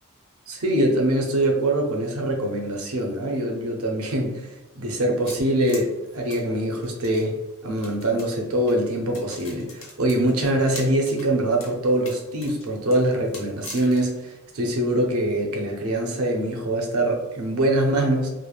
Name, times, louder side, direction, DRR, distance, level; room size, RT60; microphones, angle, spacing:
voice 1, 0.5-4.5 4.8-18.3, right 1 dB, 75° right, 2 dB, 0.6 m, -23 dB
sound 1, 5.3-7.2 7.8-8.3 8.7-8.8 9.1-11.3 11.6-11.7 12.1-14.1, left 3 dB, 65° left, 0.8 m, -41 dB
3.1 x 2.0 x 2.3 m, 1.1 s
head